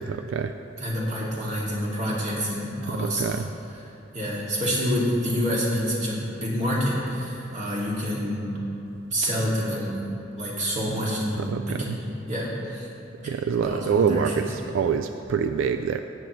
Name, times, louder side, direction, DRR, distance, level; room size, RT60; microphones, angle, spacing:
voice 1, 0.1-0.5 3.0-3.5 11.4-12.0 13.2-16.0, right 6 dB, 80° right, 8 dB, 0.3 m, -26 dB
voice 2, 0.8-3.4 4.1-8.6 9.1-10.0 10.3-12.9 13.2-13.3 13.6-14.5, equal, 35° right, -5 dB, 2.3 m, -27 dB
17.0 x 8.3 x 3.1 m, 3.0 s
head